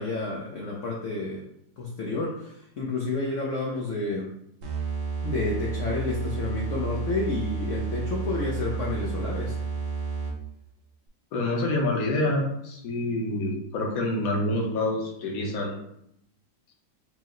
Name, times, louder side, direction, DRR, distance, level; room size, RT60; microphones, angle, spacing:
voice 1, 0.0-1.4 1.8-4.3 5.2-9.6, left 3 dB, 75° left, -2 dB, 0.7 m, -30 dB
sound 1, 4.6-10.5, right 4 dB, 90° right, 1.6 m, -31 dB
voice 2, 11.3-15.8, left 1 dB, 60° left, 0 dB, 1.2 m, -27 dB
4.6 x 2.0 x 3.7 m, 0.75 s
omnidirectional pair, 2.0 m